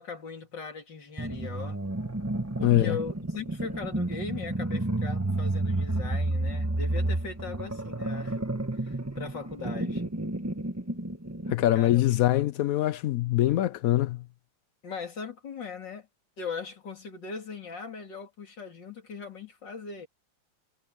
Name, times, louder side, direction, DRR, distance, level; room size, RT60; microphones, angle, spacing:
voice 1, 0.0-1.8 2.6-8.4 8.8-10.2 11.8-12.5 14.8-16.1 16.4-20.1, left 5 dB, 70° left, 3.4 m, -39 dB
sound 1, 1.2-11.7, right 2 dB, 10° right, 0.9 m, -31 dB
voice 2, 2.6-3.0 11.5-14.2, left 14 dB, 85° left, 0.7 m, -23 dB
omnidirectional pair, 2.1 m